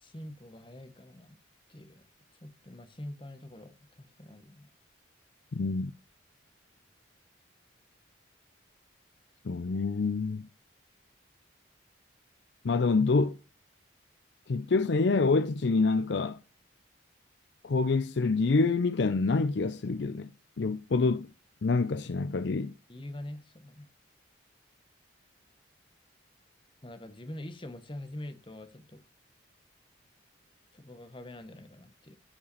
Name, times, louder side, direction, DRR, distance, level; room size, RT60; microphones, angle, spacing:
voice 1, 0.0-1.4 1.7-2.0 2.4-4.7 22.9-23.9 26.8-29.0 30.7-32.2, left 1 dB, 25° left, 1.0 m, -44 dB
voice 2, 5.5-5.9 9.4-10.5 12.6-13.4 14.5-16.4 17.6-20.3 20.6-21.3 21.6-22.7, left 3 dB, 60° left, 0.5 m, -26 dB
13.5 x 5.7 x 4.1 m
head